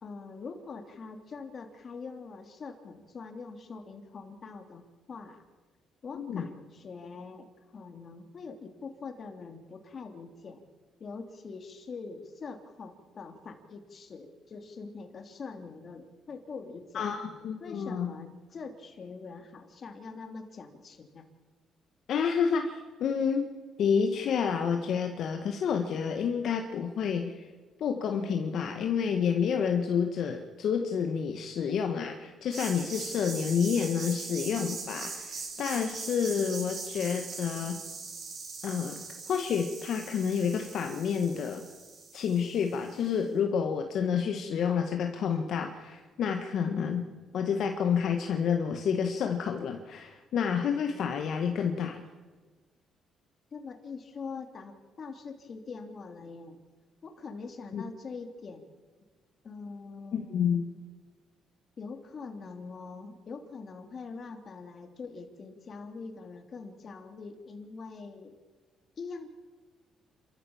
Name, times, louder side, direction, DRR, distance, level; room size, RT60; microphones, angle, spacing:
voice 1, 0.0-5.4 6.0-10.6 11.0-17.1 17.6-21.3 53.5-56.6 57.0-58.7 59.4-60.7 61.8-68.3 69.0-69.3, left 4 dB, 45° left, 6 dB, 3.0 m, -43 dB
voice 2, 6.1-6.5 16.9-18.1 22.1-23.5 23.8-27.5 27.8-37.8 38.6-39.0 39.3-41.6 42.1-47.0 47.3-52.0 57.7-57.8 60.1-60.7, left 7 dB, 65° left, 5 dB, 1.6 m, -29 dB
sound 1, 32.5-43.0, right 4 dB, 55° right, 7.4 m, -41 dB
29.0 x 14.0 x 7.3 m, 1.4 s
cardioid pair, 85°, 0 cm